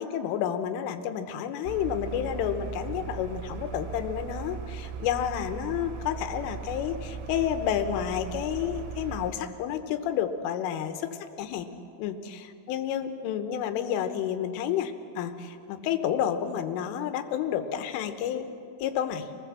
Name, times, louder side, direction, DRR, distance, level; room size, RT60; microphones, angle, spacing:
voice 1, 0.0-11.1 11.4-11.7 12.0-18.5 18.8-19.3, left 9 dB, 85° left, 8 dB, 3.6 m, -30 dB
sound 1, 1.7-9.3, right 7 dB, 80° right, 3.4 m, -38 dB
25.5 x 19.0 x 7.4 m, 2.6 s
omnidirectional pair, 5.6 m